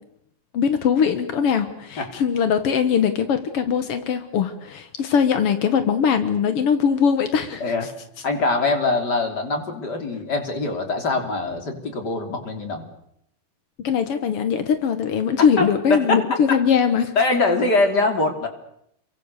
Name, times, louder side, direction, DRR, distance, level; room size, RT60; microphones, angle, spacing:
voice 1, 0.5-7.6 13.8-17.1, left 7 dB, 70° left, 10 dB, 1.3 m, -21 dB
voice 2, 7.6-7.9 8.2-12.8 15.4-16.6 17.1-18.5, left 3 dB, 25° left, 5 dB, 3.2 m, -23 dB
29.0 x 23.5 x 6.7 m, 0.74 s
omnidirectional pair, 4.7 m